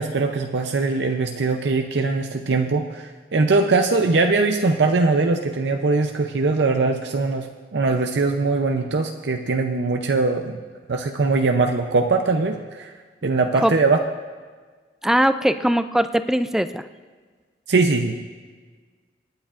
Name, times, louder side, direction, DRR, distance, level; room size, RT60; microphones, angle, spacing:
voice 1, 0.0-10.6 10.9-12.9 13.2-14.0 17.7-18.2, right 3 dB, 75° right, 4 dB, 0.6 m, -21 dB
voice 2, 15.0-16.9, equal, 5° right, 11 dB, 0.3 m, -20 dB
26.0 x 9.6 x 2.5 m, 1.5 s
head